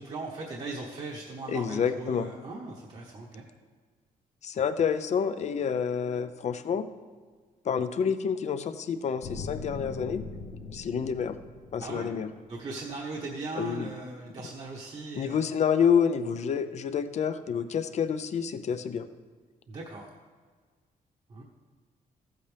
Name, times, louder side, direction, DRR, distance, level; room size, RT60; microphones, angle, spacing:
voice 1, 0.0-3.4 11.8-12.1 12.5-15.4 19.7-20.1 21.3-21.4, right 3 dB, 45° right, -3 dB, 1.2 m, -38 dB
voice 2, 1.5-2.3 4.4-6.9 7.7-10.2 10.7-11.4 11.7-12.3 13.5-13.9 15.2-19.1, left 7 dB, 50° left, 11 dB, 0.6 m, -28 dB
sound 1, 9.2-12.4, left 4 dB, 70° left, 0.9 m, -41 dB
14.5 x 8.3 x 3.4 m, 1.5 s
cardioid pair, 135°, 15 cm